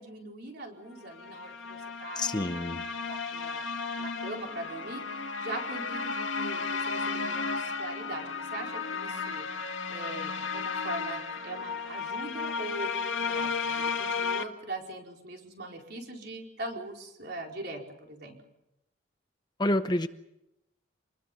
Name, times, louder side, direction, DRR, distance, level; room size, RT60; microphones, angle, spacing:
voice 1, 0.0-3.7 4.0-9.4 9.9-18.4, right 2 dB, 55° right, 1 dB, 4.7 m, -41 dB
sound 1, 1.1-14.4, left 5 dB, 80° left, 2.0 m, -34 dB
voice 2, 2.2-2.8 19.6-20.1, left 1 dB, 20° left, 10 dB, 0.8 m, -28 dB
27.5 x 20.5 x 7.0 m, 0.87 s
head